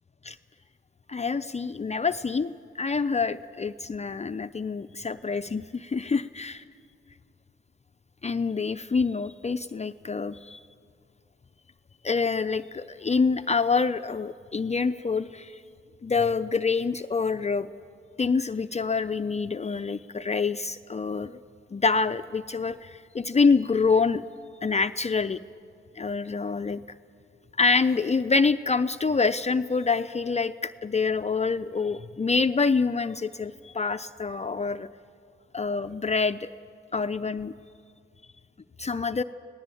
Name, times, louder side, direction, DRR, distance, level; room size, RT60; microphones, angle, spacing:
voice 1, 1.1-6.6 8.2-10.6 12.0-15.6 16.0-17.7 18.2-21.4 21.7-24.2 24.6-25.4 26.0-26.8 27.6-34.9 35.5-36.5 36.9-37.5 38.8-39.2, left 4 dB, 30° left, 10 dB, 0.5 m, -26 dB
25.0 x 18.0 x 8.5 m, 2.3 s
cardioid pair, 60°, 21 cm